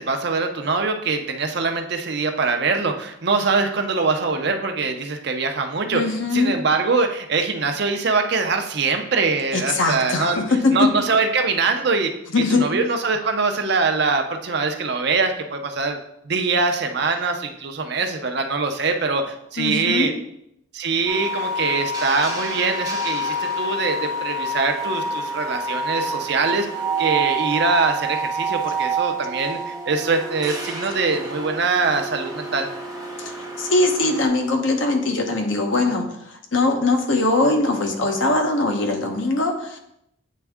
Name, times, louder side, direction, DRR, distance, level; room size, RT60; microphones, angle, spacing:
voice 1, 0.0-10.4 10.7-12.1 12.5-16.0 16.2-20.1 20.7-26.7 27.0-32.7, right 4 dB, 55° right, 5 dB, 0.6 m, -23 dB
voice 2, 5.9-6.5 9.5-10.9 12.3-12.7 19.6-20.1 33.2-39.8, left 2 dB, 70° left, 4 dB, 0.9 m, -21 dB
sound 1, 21.1-34.3, right 2 dB, 20° right, 0.9 m, -28 dB
8.3 x 3.5 x 3.5 m, 0.77 s
head